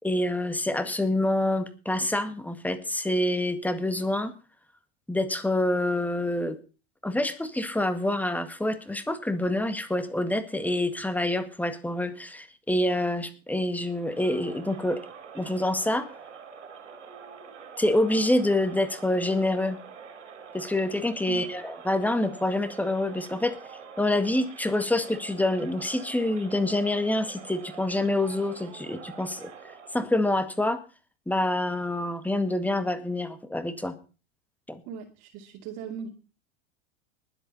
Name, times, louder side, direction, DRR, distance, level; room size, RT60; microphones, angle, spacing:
voice 1, 0.0-4.3 5.1-6.6 7.0-15.0 15.3-16.1 17.8-19.8 20.5-23.5 24.0-29.5 29.9-30.8 31.3-33.9 34.7-34.8, left 1 dB, 5° left, 10 dB, 1.9 m, -26 dB
Crowd, 13.9-30.2, right 6 dB, 85° right, 3.7 m, -46 dB
voice 2, 34.9-36.1, right 6 dB, 50° right, 2 dB, 2.6 m, -38 dB
20.5 x 8.0 x 4.2 m, 0.34 s
hypercardioid pair, 90°, 35 cm